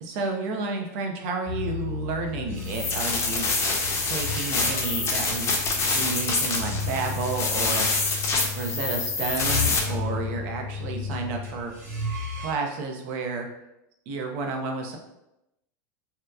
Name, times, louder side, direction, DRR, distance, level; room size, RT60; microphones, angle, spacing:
voice 1, 0.0-3.5 4.0-7.9 8.5-11.7 12.4-13.5 14.1-15.0, right 4 dB, 60° right, 2 dB, 0.5 m, -31 dB
sound 1, 1.5-12.5, left 4 dB, 25° right, 1.0 m, -34 dB
sound 2, 2.7-9.8, left 3 dB, 30° left, 0.5 m, -26 dB
2.7 x 2.2 x 2.2 m, 0.88 s
supercardioid pair, 125°, 9 cm